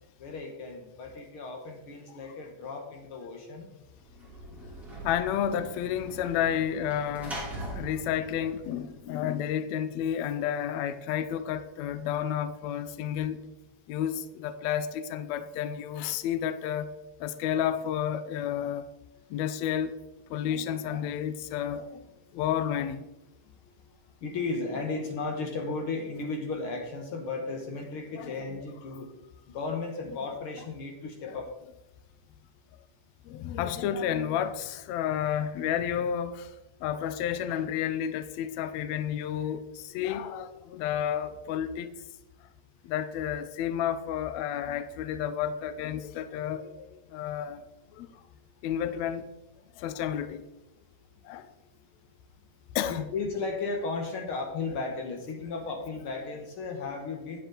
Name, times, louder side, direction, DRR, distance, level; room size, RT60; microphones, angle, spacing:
voice 1, 0.2-3.7 23.4-23.9 24.2-29.1 29.5-31.5 48.3-48.4 52.9-57.4, left 3 dB, 65° left, 1.4 m, -35 dB
Sliding door / Slam, 4.0-9.4, right 1 dB, ahead, 2.2 m, -42 dB
voice 2, 5.0-7.4 7.7-13.5 13.9-16.9 17.2-18.9 19.3-20.0 20.3-22.1 22.3-23.0 28.2-28.6 31.3-31.4 33.2-36.6 36.8-41.9 42.8-47.6 47.9-48.2 48.6-49.3 49.8-50.4 51.2-51.5 52.7-53.1, left 9 dB, 85° left, 1.5 m, -31 dB
9.7 x 8.2 x 3.9 m
omnidirectional pair, 3.9 m